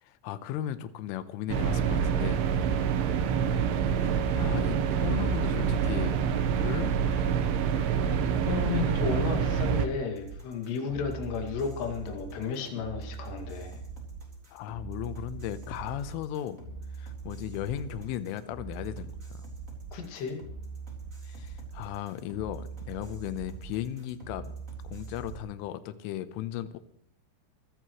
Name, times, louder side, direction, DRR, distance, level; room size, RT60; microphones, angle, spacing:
voice 1, 0.0-2.4 3.9-6.2 6.6-6.9 14.5-16.6 17.0-19.5 21.2-24.6 24.8-26.8, left 11 dB, 80° left, 12 dB, 3.3 m, -36 dB
sound 1, 1.5-9.9, right 7 dB, 75° right, 3.5 m, -26 dB
voice 2, 8.0-13.8 19.9-20.4, left 5 dB, 60° left, 2 dB, 4.2 m, -33 dB
sound 2, 10.2-25.4, right 4 dB, 15° right, 3.6 m, -42 dB
24.5 x 14.0 x 3.2 m, 0.65 s
omnidirectional pair, 5.8 m